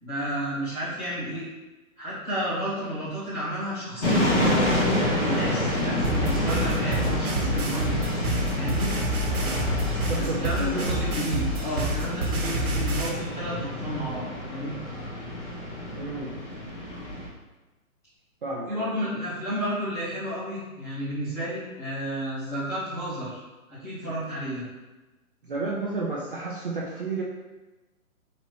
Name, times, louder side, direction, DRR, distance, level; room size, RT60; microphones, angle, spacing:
voice 1, 0.0-1.4 2.0-4.6 5.2-8.0 8.5-8.9 10.1-14.8 18.7-23.4 23.7-24.6, right 1 dB, 5° left, -13 dB, 1.1 m, -31 dB
sound 1, 4.0-17.3, left 1 dB, 55° left, 1.5 m, -28 dB
sound 2, 6.0-13.1, right 1 dB, 80° right, 1.2 m, -28 dB
voice 2, 10.0-10.9 15.9-16.3 18.4-18.9 25.5-27.2, right 2 dB, 40° right, -5 dB, 0.6 m, -31 dB
4.1 x 2.8 x 4.6 m, 1.1 s
hypercardioid pair, 170°, 43 cm